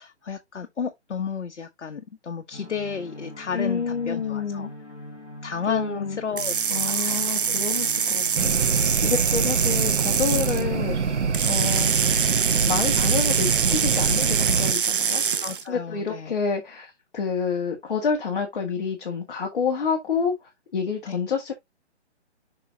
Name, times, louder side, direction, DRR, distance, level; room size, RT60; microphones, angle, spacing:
voice 1, 0.0-4.7 5.4-7.3 15.4-16.3 21.1-21.2, left 6 dB, 85° left, 1.2 m, -32 dB
sound 1, 2.5-8.8, left 1 dB, 10° left, 3.0 m, -42 dB
voice 2, 3.5-4.7 5.6-6.2 6.7-11.1 11.5-11.9 12.6-15.2 15.7-21.5, left 5 dB, 45° left, 2.0 m, -28 dB
sound 2, 6.4-10.6 11.3-15.6, right 7 dB, 50° right, 0.6 m, -24 dB
sound 3, 8.3-14.7, right 5 dB, 75° right, 1.2 m, -25 dB
6.2 x 5.5 x 2.8 m
hypercardioid pair, 170°, 35 cm